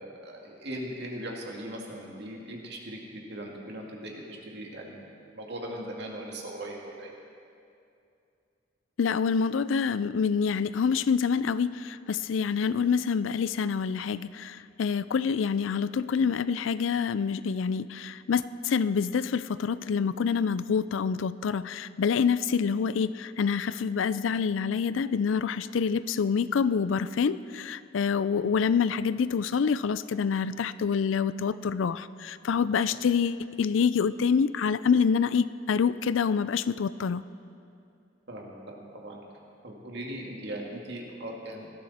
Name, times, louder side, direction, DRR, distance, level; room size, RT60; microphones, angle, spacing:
voice 1, 0.0-5.0 5.3-7.1 32.9-33.0 38.3-39.2 39.6-41.7, right 1 dB, 60° right, -1 dB, 2.3 m, -39 dB
voice 2, 9.0-37.2, left 6 dB, 90° left, 16 dB, 0.4 m, -27 dB
18.5 x 13.5 x 4.2 m, 2.5 s
head